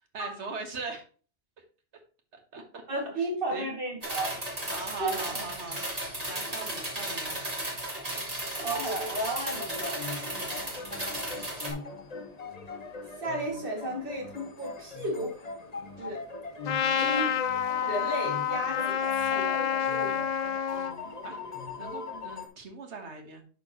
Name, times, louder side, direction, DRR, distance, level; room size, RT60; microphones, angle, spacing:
voice 1, 0.1-1.0 2.3-2.8 3.2-3.7 4.7-5.9 6.3-7.4 10.4-10.6 21.2-21.4 21.8-23.4, right 4 dB, 75° right, 4 dB, 1.7 m, -41 dB
voice 2, 2.9-4.3 5.0-5.4 8.5-10.0 13.2-15.3 16.0-16.2 17.0-17.4 17.9-19.0 19.3-20.2, right 1 dB, 50° right, -1 dB, 2.5 m, -33 dB
sound 1, 4.0-11.7, right 1 dB, 35° right, 2.3 m, -35 dB
sound 2, 9.5-22.5, left 3 dB, 35° left, 1.2 m, -40 dB
Trumpet, 16.7-20.9, left 8 dB, 55° left, 0.5 m, -28 dB
11.0 x 4.5 x 3.0 m, 0.39 s
omnidirectional pair, 1.2 m